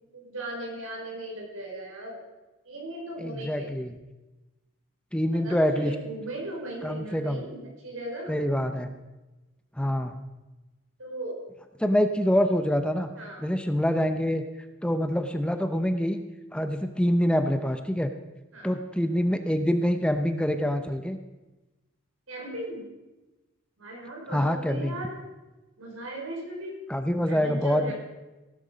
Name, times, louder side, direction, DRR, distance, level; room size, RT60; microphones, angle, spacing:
voice 1, 0.1-2.2 2.6-3.7 5.4-8.4 11.0-11.4 13.2-13.4 18.5-18.7 22.3-22.8 23.8-25.1 25.8-26.8 27.3-27.9, right 1 dB, 90° right, -1 dB, 4.8 m, -37 dB
voice 2, 3.2-4.0 5.1-6.0 6.8-7.4 8.3-8.9 9.8-10.2 11.8-13.1 13.4-14.4 14.8-16.2 16.5-18.1 18.6-21.2 24.3-24.9 26.9-27.9, equal, 5° left, 7 dB, 0.7 m, -25 dB
17.0 x 11.0 x 5.1 m, 1.1 s
head